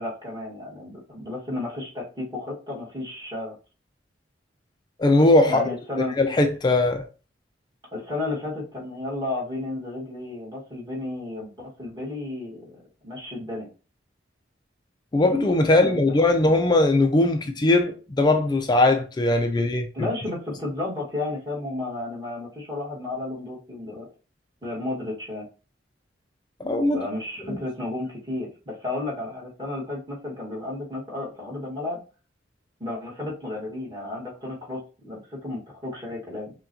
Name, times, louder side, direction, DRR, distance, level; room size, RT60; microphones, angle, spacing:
voice 1, 0.0-3.5 5.5-6.2 7.9-13.7 15.7-16.2 19.9-24.1 24.6-25.5 26.9-32.0 32.8-36.5, left 2 dB, 25° right, 1.6 m, -33 dB
voice 2, 5.0-5.6 6.2-7.0 15.1-20.1 26.6-27.0 27.5-27.6, left 2 dB, 25° left, 0.4 m, -20 dB
5.8 x 2.3 x 2.8 m
head